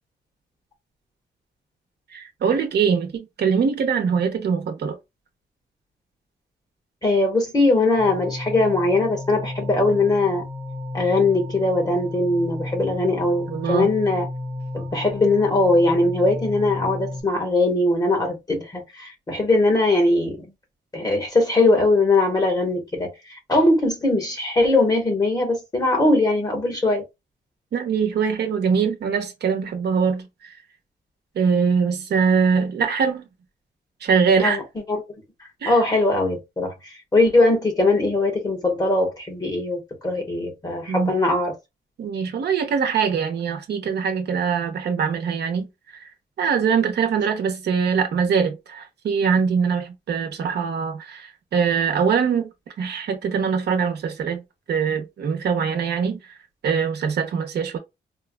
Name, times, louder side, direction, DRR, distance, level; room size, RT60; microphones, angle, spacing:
voice 1, 2.1-5.0 13.5-13.9 27.7-30.6 31.3-33.3 34.0-34.6 35.6-35.8 40.9-41.1 42.0-46.1 46.4-52.5 52.8-54.4 54.7-56.4 56.6-57.8, right 6 dB, 80° right, 0.8 m, -23 dB
voice 2, 7.0-10.5 10.9-14.3 14.7-20.5 20.9-23.1 23.5-27.0 34.4-34.6 34.9-35.0 35.6-41.5, left 2 dB, 25° left, 1.3 m, -20 dB
sound 1, 8.0-17.2, left 2 dB, 45° left, 1.8 m, -33 dB
4.4 x 2.2 x 2.3 m
wide cardioid pair, 150°, 17 cm